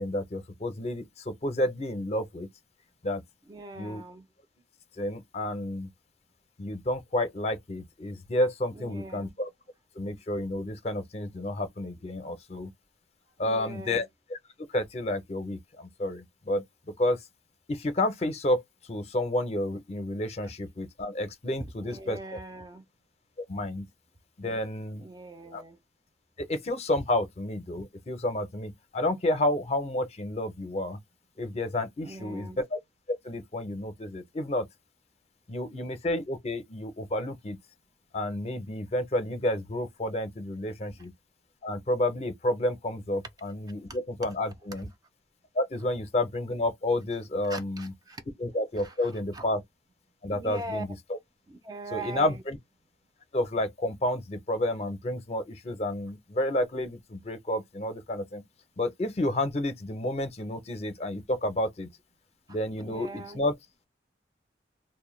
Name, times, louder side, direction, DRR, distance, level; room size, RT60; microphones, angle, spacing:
voice 1, 0.0-2.5 3.0-3.2 3.8-4.0 5.0-5.9 6.6-9.5 10.0-12.7 13.4-14.4 14.7-17.2 17.7-18.6 18.9-22.2 23.5-23.9 24.4-25.1 25.5-25.6 26.4-31.0 31.4-32.8 33.1-34.7 35.5-37.6 38.1-41.1 41.6-44.9 45.6-47.9 48.4-49.6 50.2-50.9 51.9-52.6 53.3-58.4 58.8-61.9 62.5-63.5, left 1 dB, 35° left, 0.5 m, -30 dB
voice 2, 3.5-4.3 8.7-9.4 13.4-14.1 20.4-20.5 21.6-22.8 25.0-25.8 32.0-32.6 44.7-44.9 47.4-48.2 48.8-49.4 50.3-50.8 51.5-52.4 62.5-63.5, right 2 dB, 20° right, 0.3 m, -41 dB
2.1 x 2.1 x 3.0 m
head